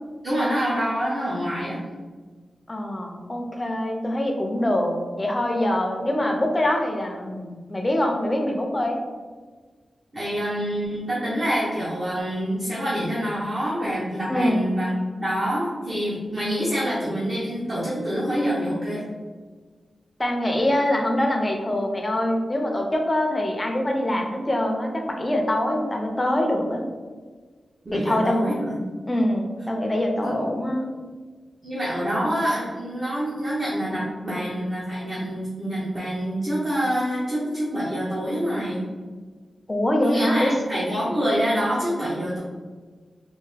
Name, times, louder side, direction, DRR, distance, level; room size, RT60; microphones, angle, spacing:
voice 1, 0.2-1.8 10.1-19.0 27.8-28.8 30.2-30.3 31.6-38.8 40.0-42.4, equal, 35° right, -8 dB, 0.9 m, -26 dB
voice 2, 2.7-9.0 14.3-14.7 20.2-26.8 27.9-28.5 29.1-30.9 39.7-40.5, left 1 dB, 20° left, 1 dB, 0.5 m, -24 dB
3.4 x 2.6 x 3.3 m, 1.4 s
wide cardioid pair, 110°, 0 cm